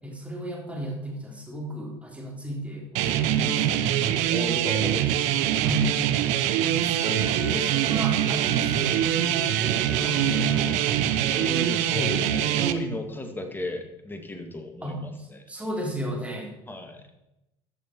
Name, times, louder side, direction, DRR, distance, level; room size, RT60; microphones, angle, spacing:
voice 1, 0.0-3.8 5.6-6.0 6.6-10.8 11.9-12.2 12.6-12.9 14.8-16.5, right 1 dB, 10° right, -1 dB, 3.7 m, -34 dB
sound 1, 2.9-12.7, right 11 dB, 75° right, 0.7 m, -24 dB
voice 2, 3.3-4.0 4.3-5.3 11.3-15.4 16.7-17.0, left 1 dB, 15° left, 5 dB, 2.1 m, -35 dB
sound 2, 6.8-12.5, right 5 dB, 50° right, 3.1 m, -43 dB
14.5 x 6.2 x 4.7 m, 0.90 s
supercardioid pair, 80°, 12 cm